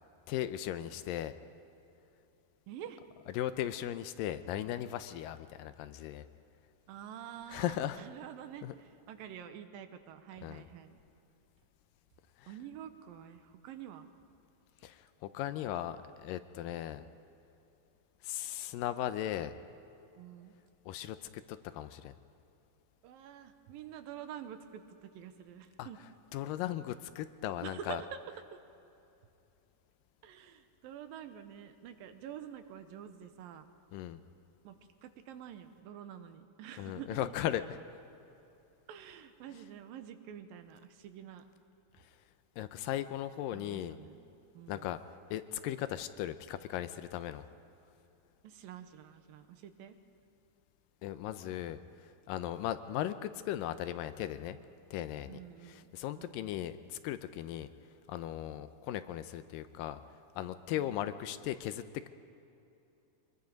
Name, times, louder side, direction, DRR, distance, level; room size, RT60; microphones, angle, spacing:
voice 1, 0.3-1.4 3.3-6.3 7.5-8.0 8.6-8.7 10.4-10.7 12.4-12.5 14.8-17.1 18.2-19.5 20.9-22.2 25.8-25.9 26.3-28.0 33.9-34.2 36.8-37.8 42.0-42.2 42.6-44.0 44.7-45.0 45.3-47.5 51.0-54.6 54.9-57.7 58.1-60.0 60.4-62.1, left 12 dB, 80° left, 11 dB, 2.3 m, -37 dB
voice 2, 2.7-3.0 6.9-11.0 12.5-14.1 20.2-20.5 23.0-26.0 27.6-28.2 28.5-28.6 30.2-33.7 34.6-37.2 38.9-41.4 43.5-44.2 44.5-44.9 48.4-50.0 55.3-56.6 60.8-61.0, right 9 dB, 80° right, 9 dB, 2.7 m, -48 dB
24.0 x 21.0 x 5.2 m, 2.9 s
omnidirectional pair, 4.1 m